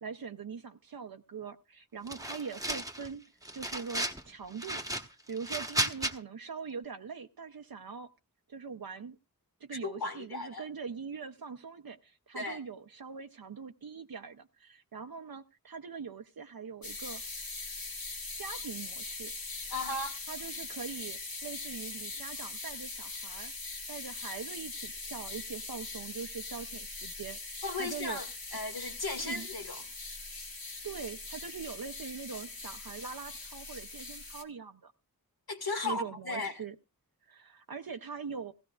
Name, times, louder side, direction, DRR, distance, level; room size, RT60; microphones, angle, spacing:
voice 1, 0.0-3.2 3.5-4.8 5.3-8.1 8.5-9.2 9.6-17.2 18.3-19.3 20.3-23.5 23.9-28.2 29.2-29.5 30.8-34.9 35.8-36.8 37.3-38.5, right 6 dB, 70° right, 0.7 m, -42 dB
sound 1, 2.1-3.1 3.4-4.2 4.6-6.1, right 1 dB, 10° right, 1.2 m, -34 dB
voice 2, 9.7-10.6 12.3-12.6 19.7-20.2 27.6-28.2 28.5-29.8 35.5-36.6, left 3 dB, 85° left, 1.9 m, -36 dB
sound 2, 16.8-34.4, left 3 dB, 70° left, 1.7 m, -41 dB
16.5 x 15.0 x 2.4 m
wide cardioid pair, 40°, 36 cm